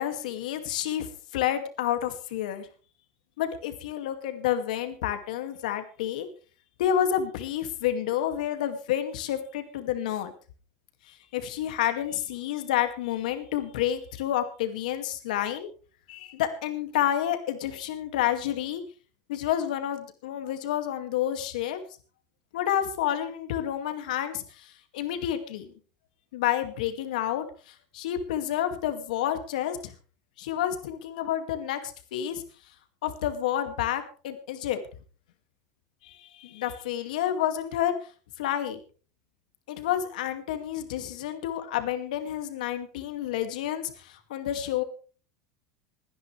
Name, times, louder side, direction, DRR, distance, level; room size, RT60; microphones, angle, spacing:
voice 1, 0.0-2.7 3.4-6.3 6.8-10.3 11.1-15.7 16.1-18.8 19.3-21.8 22.5-25.7 26.3-29.9 30.4-32.4 33.0-34.8 36.0-38.0 38.4-38.8 39.7-44.8, left 11 dB, 85° left, 7 dB, 2.2 m, -29 dB
26.5 x 10.5 x 3.3 m, 0.39 s
supercardioid pair, 115°, 4 cm